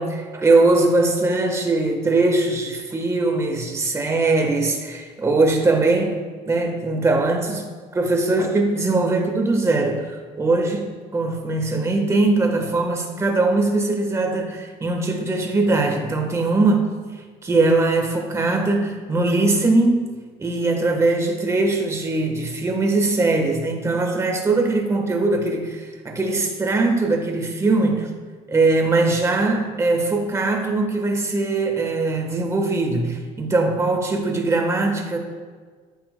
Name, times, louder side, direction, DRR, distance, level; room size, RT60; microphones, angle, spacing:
voice 1, 0.0-6.2 6.4-16.9 17.4-20.1 20.4-28.1 28.5-35.2, right 2 dB, 20° right, 2 dB, 1.2 m, -21 dB
13.5 x 7.8 x 2.2 m, 1.5 s
cardioid pair, 140°, 15 cm